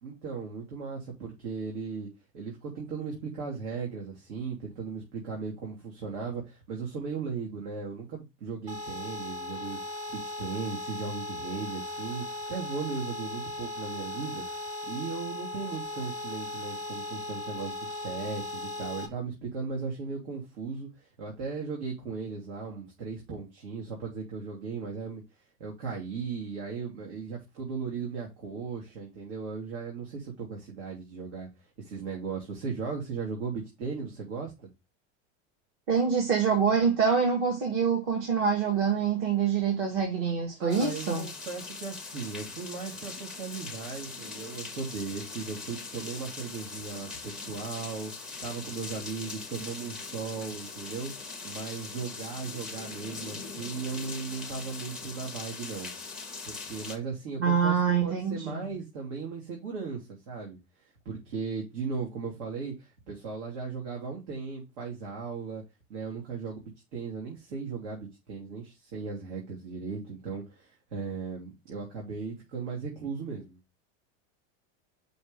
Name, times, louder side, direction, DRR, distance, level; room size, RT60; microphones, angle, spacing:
voice 1, 0.0-2.1 2.3-9.8 10.1-14.4 14.9-25.2 25.6-31.5 31.8-34.7 40.6-48.1 48.4-51.1 51.4-55.9 56.5-60.6 61.0-65.6 65.9-73.6, right 5 dB, 80° right, 2.8 m, -37 dB
sound 1, 8.7-19.1, left 2 dB, 20° right, 1.1 m, -37 dB
voice 2, 35.9-41.3 57.4-58.6, right 6 dB, 55° right, 2.1 m, -25 dB
sound 2, 40.7-57.0, left 4 dB, ahead, 0.5 m, -41 dB
5.4 x 4.3 x 5.2 m
supercardioid pair, 180°, 36 cm